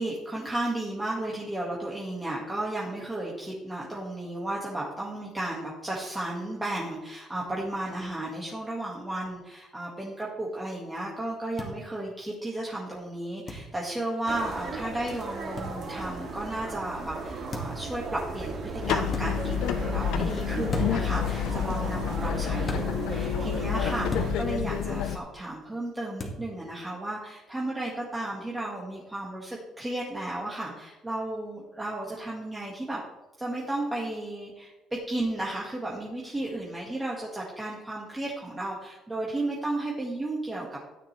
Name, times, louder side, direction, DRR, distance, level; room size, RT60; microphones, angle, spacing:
voice 1, 0.0-33.0 33.4-40.8, right 1 dB, 10° right, -4 dB, 1.9 m, -34 dB
sound 1, 11.6-11.7 13.5-13.7 15.6-15.7 17.5-17.8 19.1-19.3 20.7-21.1 22.6-22.9 24.1-24.3 26.2-26.4, left 1 dB, 25° left, 2.1 m, -33 dB
sound 2, 14.3-24.3, right 3 dB, 50° right, 2.4 m, -36 dB
sound 3, 18.8-25.2, left 9 dB, 85° left, 0.9 m, -29 dB
13.5 x 9.8 x 3.4 m, 1.0 s
cardioid pair, 150°, 0 cm